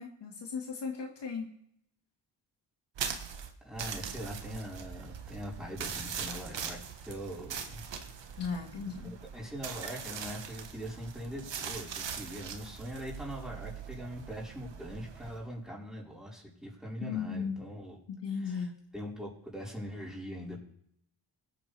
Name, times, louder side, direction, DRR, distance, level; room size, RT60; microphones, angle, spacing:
voice 1, 0.0-1.5 8.4-9.2 17.0-17.6 18.1-18.8, left 5 dB, 60° left, 1 dB, 2.0 m, -36 dB
sound 1, 2.9-15.4, right 7 dB, 65° right, 1.5 m, -41 dB
voice 2, 3.6-7.8 9.0-18.0 18.4-18.7 18.9-20.6, equal, ahead, -5 dB, 4.7 m, -42 dB
20.0 x 8.9 x 3.4 m, 0.71 s
cardioid pair, 90°, 46 cm